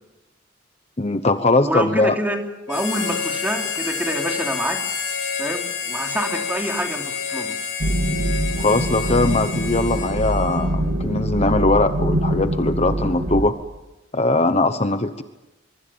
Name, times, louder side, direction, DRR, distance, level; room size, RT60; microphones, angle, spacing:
voice 1, 1.0-2.1 8.6-13.5 14.1-15.2, left 2 dB, 35° left, 9 dB, 1.0 m, -20 dB
voice 2, 1.6-2.4 2.7-4.8 5.4-7.5, right 1 dB, 10° right, 2 dB, 3.0 m, -26 dB
Harmonica, 2.7-10.7, left 6 dB, 75° left, 7.1 m, -29 dB
sound 1, 7.8-13.4, right 1 dB, 80° right, 3.1 m, -24 dB
24.5 x 23.5 x 8.9 m, 1.0 s
head